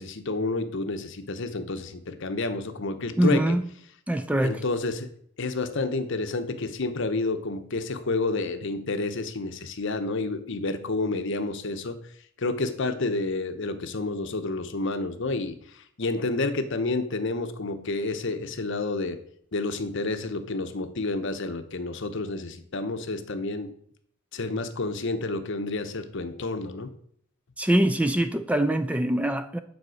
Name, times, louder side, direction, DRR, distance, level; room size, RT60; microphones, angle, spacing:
voice 1, 0.0-3.6 4.4-5.1 5.4-12.0 12.4-19.2 19.5-23.7 24.3-26.9, left 3 dB, 60° left, 0.8 m, -29 dB
voice 2, 3.2-3.6 4.1-4.6 27.6-29.6, right 1 dB, 5° right, 0.4 m, -23 dB
9.5 x 4.2 x 6.3 m
head